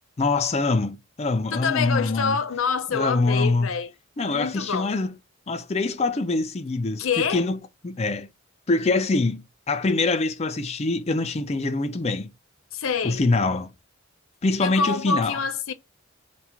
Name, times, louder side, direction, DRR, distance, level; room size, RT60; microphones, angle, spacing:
voice 1, 0.2-2.4 2.9-3.7 4.2-5.1 5.5-7.1 7.3-7.6 7.8-8.3 8.7-12.3 13.0-13.7 14.4-15.4, left 3 dB, 30° left, 0.5 m, -24 dB
voice 2, 1.5-3.9 4.3-4.9 7.0-7.5 12.7-13.2 14.6-15.7, left 5 dB, 75° left, 0.6 m, -26 dB
3.6 x 2.3 x 4.3 m
head